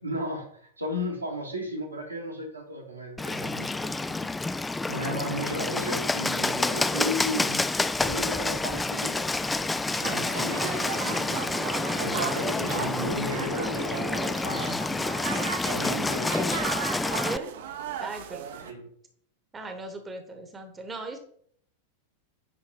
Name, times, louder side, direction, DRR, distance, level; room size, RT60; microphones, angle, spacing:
voice 1, 0.0-4.3 4.9-7.7 8.0-14.8 15.6-16.7 18.5-18.9, equal, 85° right, -1 dB, 2.0 m, -35 dB
Bird, 3.2-17.4, left 3 dB, 10° left, 0.3 m, -28 dB
sound 1, 10.0-18.7, right 9 dB, 55° right, 0.8 m, -36 dB
voice 2, 17.2-17.6 18.0-18.5 19.5-21.2, right 3 dB, 15° right, 6 dB, 1.1 m, -38 dB
9.8 x 3.8 x 4.5 m, 0.63 s
figure-of-eight pair, 90°, 0 cm